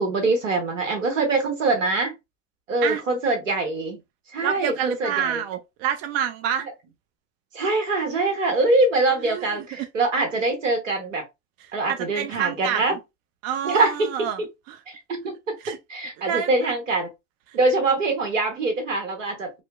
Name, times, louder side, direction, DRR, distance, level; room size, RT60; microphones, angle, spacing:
voice 1, 0.0-2.1 2.7-4.0 4.3-5.4 7.5-11.2 11.7-13.0 13.6-14.1 14.9-15.6 15.9-17.1 17.5-19.5, right 3 dB, 85° right, 0.9 m, -23 dB
voice 2, 4.4-6.7 9.3-9.9 11.7-12.8 13.4-14.4 14.7-14.8 15.6-15.8 16.2-16.5, right 9 dB, 45° right, 0.4 m, -28 dB
2.6 x 2.1 x 2.3 m
hypercardioid pair, 85°, 37 cm